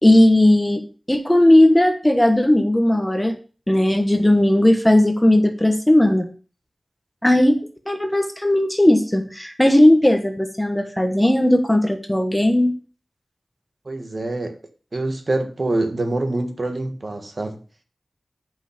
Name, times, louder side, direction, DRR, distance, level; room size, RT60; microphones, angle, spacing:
voice 1, 0.0-0.8 1.1-3.3 3.7-6.3 7.2-12.8, left 1 dB, 10° left, 6 dB, 1.2 m, -16 dB
voice 2, 13.8-14.5 14.9-17.6, right 2 dB, 50° right, 5 dB, 1.4 m, -25 dB
8.4 x 5.6 x 5.1 m, 0.36 s
wide cardioid pair, 85°, 0 cm